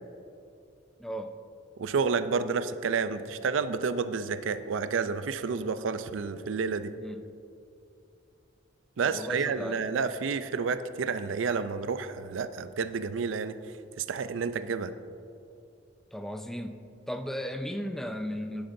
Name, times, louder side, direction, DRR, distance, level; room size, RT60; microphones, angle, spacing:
voice 1, 1.0-1.4 7.0-7.2 9.0-9.8 16.1-16.8 17.1-18.7, equal, ahead, 7 dB, 0.3 m, -35 dB
voice 2, 1.8-6.9 9.0-13.6 14.0-14.9, right 5 dB, 90° right, 12 dB, 0.4 m, -30 dB
11.5 x 10.5 x 2.6 m, 2.6 s
head